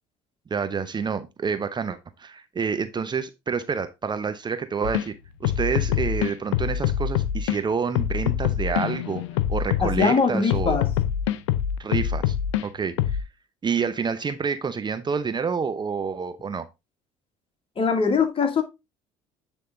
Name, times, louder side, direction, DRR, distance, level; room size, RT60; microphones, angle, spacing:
voice 1, 0.5-9.2 9.5-10.8 11.8-12.4 12.6-13.2 13.6-16.7, right 5 dB, 30° right, 0.7 m, -28 dB
sound 1, 4.8-5.1 5.4-7.6 8.0-10.1 10.5-12.6 13.0-13.2, left 10 dB, 80° left, 0.5 m, -24 dB
voice 2, 9.8-10.9 17.8-18.6, left 5 dB, 35° left, 2.1 m, -22 dB
9.4 x 3.6 x 3.8 m
hypercardioid pair, 65°, 15 cm